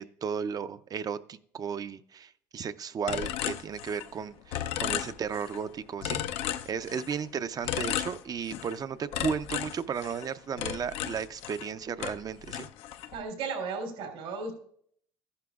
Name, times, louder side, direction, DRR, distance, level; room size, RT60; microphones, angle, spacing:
voice 1, 0.0-12.7, right 6 dB, 40° right, 12 dB, 0.5 m, -34 dB
sound 1, 3.1-4.2 4.5-5.6 6.0-7.2 7.6-8.8 9.1-11.7 12.0-13.2, left 11 dB, 80° left, 0.5 m, -34 dB
voice 2, 13.1-14.5, right 4 dB, 85° right, 2 dB, 3.2 m, -35 dB
14.0 x 11.0 x 2.4 m, 0.63 s
supercardioid pair, 90°, 10 cm